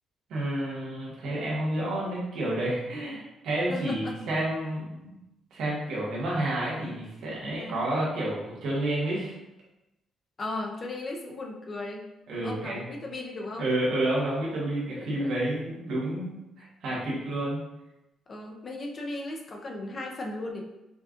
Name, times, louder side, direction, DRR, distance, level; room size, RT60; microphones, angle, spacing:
voice 1, 0.3-5.1 5.5-9.3 12.3-12.8 13.6-17.6, right 1 dB, 80° right, -6 dB, 1.4 m, -30 dB
voice 2, 3.7-4.2 7.5-7.8 10.4-12.0 12.4-13.7 14.9-15.3 16.6-16.7 18.3-20.6, left 2 dB, 40° left, 0 dB, 0.7 m, -36 dB
5.2 x 2.4 x 2.5 m, 0.94 s
cardioid pair, 90°, 0 cm